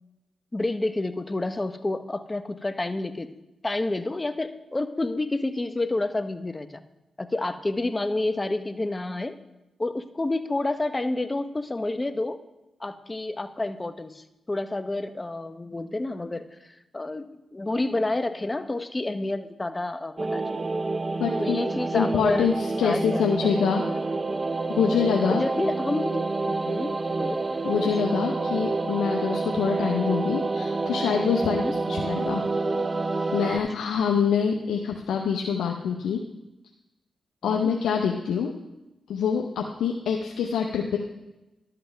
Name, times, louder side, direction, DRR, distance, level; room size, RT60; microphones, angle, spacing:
voice 1, 0.5-3.3 3.6-6.8 7.2-9.3 9.8-12.4 12.8-20.6 21.4-22.5 22.8-23.2 23.7-24.0 25.2-27.4 27.8-27.9 31.4-31.7 37.4-37.7, left 2 dB, 25° left, 10 dB, 0.7 m, -29 dB
sound 1, 20.2-33.6, right 3 dB, 35° right, 0.5 m, -28 dB
voice 2, 21.2-21.6 21.9-23.8 24.8-25.4 27.6-31.6 31.9-32.4 33.3-36.2 37.4-38.5 39.1-41.0, left 7 dB, 85° left, 0 dB, 0.7 m, -25 dB
12.5 x 7.7 x 3.4 m, 0.98 s
supercardioid pair, 50°, 0 cm